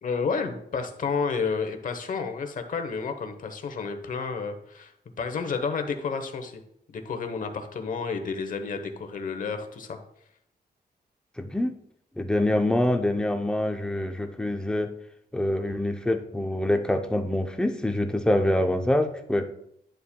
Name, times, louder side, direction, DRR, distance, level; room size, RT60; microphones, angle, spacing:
voice 1, 0.0-4.9 5.2-6.6 6.9-10.0, left 5 dB, 55° left, 7 dB, 0.9 m, -30 dB
voice 2, 11.4-11.7 12.2-14.9 15.3-19.4, left 1 dB, 5° left, 5 dB, 0.6 m, -25 dB
10.5 x 7.1 x 2.2 m, 0.74 s
wide cardioid pair, 160°, 17 cm